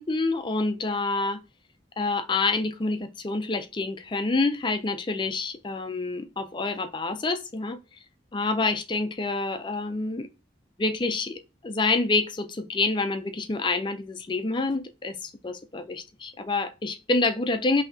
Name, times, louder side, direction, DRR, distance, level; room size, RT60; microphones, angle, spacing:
voice 1, 0.0-1.4 2.0-7.8 8.3-10.3 10.8-17.8, left 3 dB, 25° left, 0.4 m, -27 dB
5.6 x 2.8 x 2.6 m
head